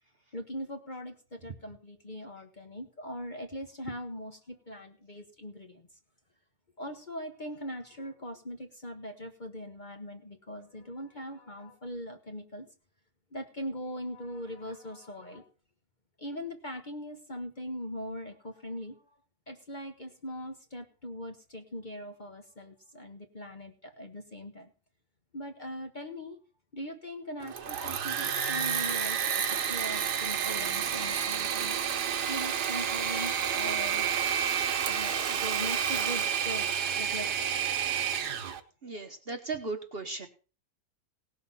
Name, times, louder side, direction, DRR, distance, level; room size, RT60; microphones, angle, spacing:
voice 1, 0.3-5.9 6.8-12.7 13.3-15.5 16.2-19.2 19.5-24.7 25.3-26.4 26.7-31.8 32.3-34.1 34.8-37.5 38.3-38.4, equal, 30° left, 5 dB, 1.1 m, -41 dB
Engine / Mechanisms, 27.4-38.6, right 8 dB, 75° right, 1.6 m, -30 dB
voice 2, 38.8-40.3, right 3 dB, 40° right, 5 dB, 1.1 m, -36 dB
18.0 x 6.4 x 5.6 m, 0.38 s
omnidirectional pair, 1.8 m